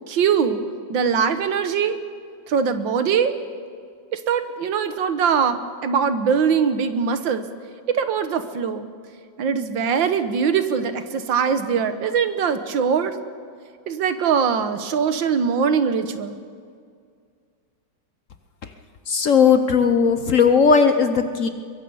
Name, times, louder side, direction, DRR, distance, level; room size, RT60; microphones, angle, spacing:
voice 1, 0.1-0.6 0.9-2.0 2.5-3.3 4.1-7.4 7.9-8.9 9.4-13.2 13.9-16.4, right 6 dB, 80° right, 10 dB, 1.9 m, -22 dB
voice 2, 19.1-21.5, left 6 dB, 50° left, 8 dB, 1.1 m, -17 dB
23.0 x 23.0 x 5.6 m, 2.2 s
omnidirectional pair, 2.0 m